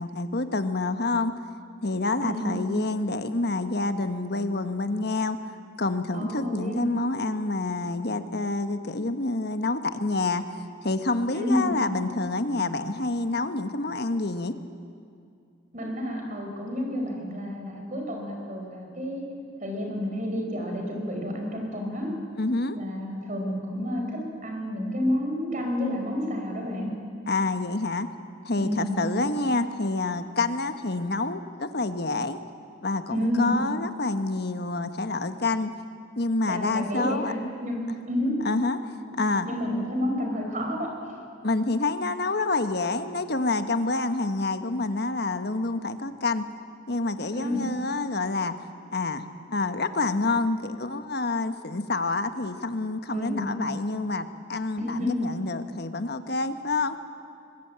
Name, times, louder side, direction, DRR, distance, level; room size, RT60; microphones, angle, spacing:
voice 1, 0.0-1.4 1.8-5.4 5.8-10.5 10.8-14.6 22.3-22.8 27.3-28.1 28.4-32.4 32.8-35.7 36.2-37.3 38.4-38.8 39.2-39.5 41.4-46.5 46.9-48.5 48.9-57.0, left 3 dB, 55° left, 9 dB, 1.2 m, -27 dB
voice 2, 2.2-2.6 6.1-6.9 11.3-11.7 15.7-19.2 19.6-22.1 22.7-26.9 28.6-29.0 33.1-33.5 36.5-37.8 38.1-38.3 39.1-39.2 39.4-40.9 47.3-47.6 53.1-53.5 54.8-55.2, left 1 dB, 40° right, 2 dB, 4.9 m, -30 dB
23.5 x 20.5 x 8.8 m, 2.4 s
head